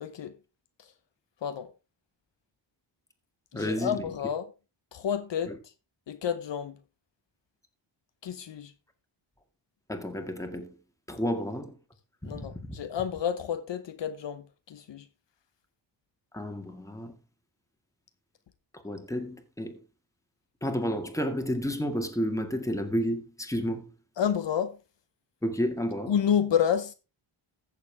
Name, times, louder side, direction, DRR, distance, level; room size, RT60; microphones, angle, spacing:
voice 1, 0.0-0.4 1.4-1.7 3.5-4.5 4.9-5.7 6.1-6.8 8.2-8.7 12.2-15.1 24.2-24.8 26.1-26.9, left 8 dB, 65° left, 0.9 m, -30 dB
voice 2, 3.5-4.0 5.5-5.6 9.9-10.8 11.1-11.7 12.2-12.8 16.3-17.2 18.7-19.8 20.6-23.9 25.4-26.1, equal, 5° left, 2.0 m, -31 dB
14.5 x 7.0 x 3.5 m
wide cardioid pair, 100°, 48 cm